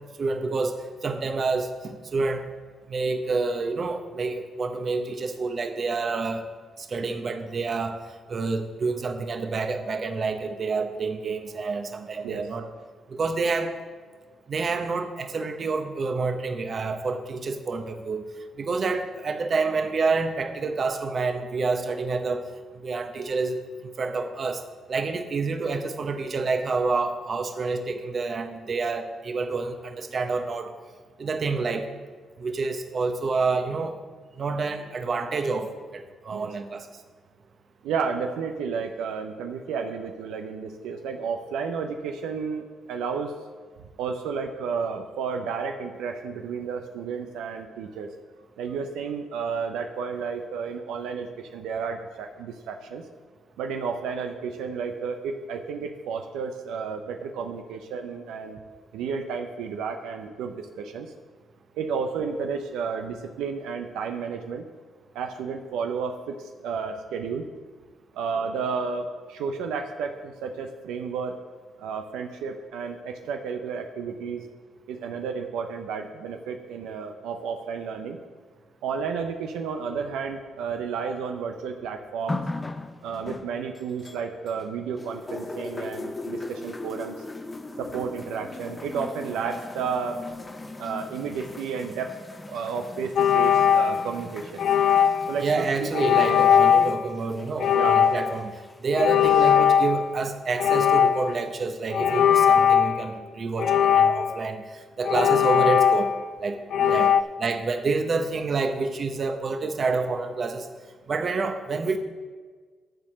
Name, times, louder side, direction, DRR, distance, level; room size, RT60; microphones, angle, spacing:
voice 1, 0.2-2.4 2.9-6.5 6.8-8.0 8.3-12.7 13.1-13.7 14.5-18.2 18.6-22.5 22.8-24.6 24.9-30.7 31.2-31.9 32.4-34.0 34.4-36.9 95.4-98.5 98.8-106.1 106.4-106.6 106.9-107.1 107.4-110.7 111.1-112.0, right 4 dB, 50° right, 7 dB, 0.9 m, -28 dB
voice 2, 37.8-43.3 44.0-48.1 48.6-53.1 53.6-58.6 58.9-61.1 61.7-64.7 65.1-67.5 68.1-71.4 71.8-74.5 74.9-78.2 78.8-82.4 83.0-87.2 87.8-90.2 90.8-92.1 92.4-94.6 95.3-95.7 95.9-96.1 97.7-98.1 106.8-107.0, right 5 dB, 90° right, 5 dB, 0.6 m, -32 dB
sound 1, 82.3-84.6 85.0-99.7 100.6-100.7, left 2 dB, 20° left, 0.7 m, -39 dB
sound 2, 93.2-94.2 94.6-95.4 95.9-97.0 97.6-98.4 98.9-100.2 100.6-101.4 101.9-103.0 103.6-104.5 105.0-106.3 106.7-107.2, left 8 dB, 70° left, 0.4 m, -20 dB
10.5 x 4.5 x 7.4 m, 1.5 s
cardioid pair, 80°, 0 cm